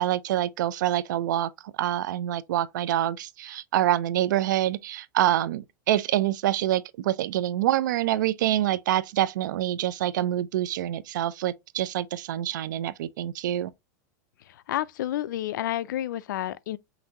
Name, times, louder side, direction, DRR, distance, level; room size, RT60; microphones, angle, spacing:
voice 1, 0.0-1.5 1.8-13.7, right 13 dB, 85° right, 0.4 m, -26 dB
voice 2, 14.5-16.8, left 13 dB, 85° left, 0.4 m, -30 dB
5.7 x 2.6 x 2.8 m
supercardioid pair, 160°, 10 cm